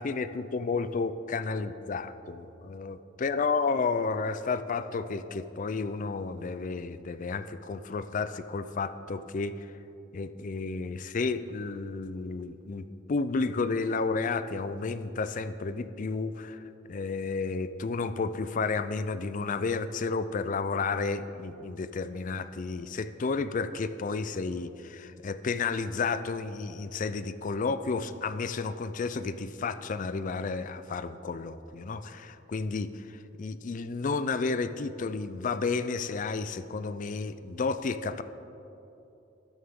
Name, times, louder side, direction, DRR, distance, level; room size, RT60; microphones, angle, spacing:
voice 1, 0.0-9.7 10.1-16.6 16.9-38.2, left 4 dB, 40° left, 13 dB, 0.4 m, -32 dB
12.5 x 9.7 x 3.7 m, 2.9 s
head